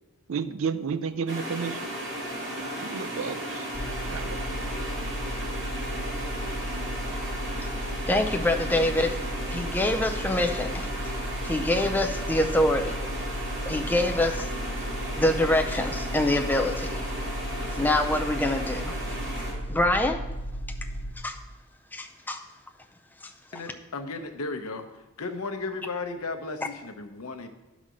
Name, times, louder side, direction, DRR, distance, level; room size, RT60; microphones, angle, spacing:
voice 1, 0.3-1.9 2.8-3.7 4.1-4.4, right 6 dB, 65° right, 13 dB, 0.4 m, -31 dB
sound 1, 1.3-19.5, equal, 50° right, 2.2 m, -35 dB
sound 2, 3.7-21.1, equal, 40° left, 1.5 m, -34 dB
voice 2, 8.1-9.2 9.5-10.9 11.4-13.0 13.6-14.5 15.2-17.0 17.7-19.0 19.7-20.3 21.2-21.4 21.9-22.4 23.2-23.6, left 1 dB, 10° left, 4 dB, 0.4 m, -25 dB
voice 3, 23.5-24.9 25.2-27.5, left 3 dB, 85° left, 7 dB, 0.8 m, -34 dB
10.0 x 4.1 x 6.2 m, 1.1 s
head